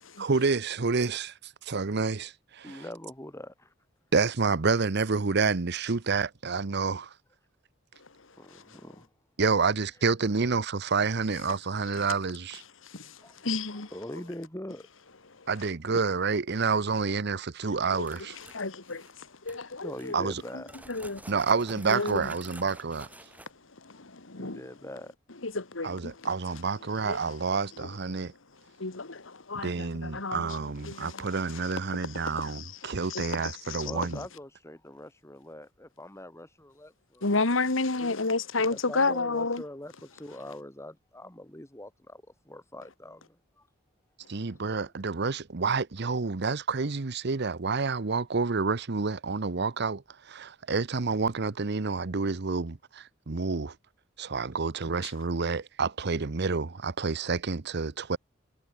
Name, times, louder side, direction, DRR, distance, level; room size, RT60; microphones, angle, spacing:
voice 1, 0.2-2.8 4.1-7.1 9.4-12.6 15.5-18.4 20.1-20.4 21.3-23.1 25.8-28.3 29.6-34.2 44.3-53.7 54.2-58.2, right 4 dB, 60° right, 0.8 m, -29 dB
voice 2, 2.6-3.7 8.4-9.1 13.2-13.4 13.9-14.8 15.9-16.0 19.8-20.7 24.4-25.1 28.1-28.3 33.9-37.3 38.0-38.2 38.7-43.4 44.7-44.8, left 1 dB, 15° left, 3.9 m, -43 dB
voice 3, 12.8-13.9 15.4-15.5 18.0-18.1 18.5-20.3 20.5-21.2 21.9-22.3 23.8-24.6 25.4-26.3 27.0-27.4 27.8-27.9 28.8-30.5 30.8-31.3 32.2-33.9 37.2-39.6, left 3 dB, 85° left, 2.0 m, -32 dB
sound 1, 18.0-19.1 19.5-19.6 19.9-23.5, right 1 dB, 10° right, 3.7 m, -50 dB
head